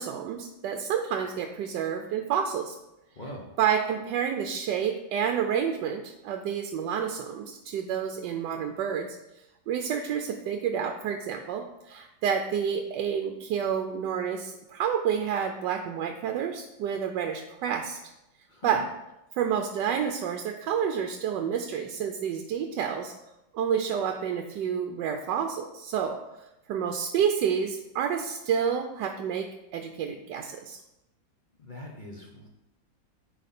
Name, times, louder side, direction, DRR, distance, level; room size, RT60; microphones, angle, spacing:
voice 1, 0.0-2.8 3.6-9.2 9.7-18.0 18.6-18.8 19.4-23.1 23.5-29.5 29.7-30.8, right 8 dB, 75° right, 5 dB, 1.2 m, -29 dB
voice 2, 3.2-3.6 18.5-18.8 31.6-32.5, left 1 dB, 40° left, -1 dB, 0.7 m, -42 dB
9.1 x 4.8 x 4.2 m, 0.93 s
omnidirectional pair, 2.1 m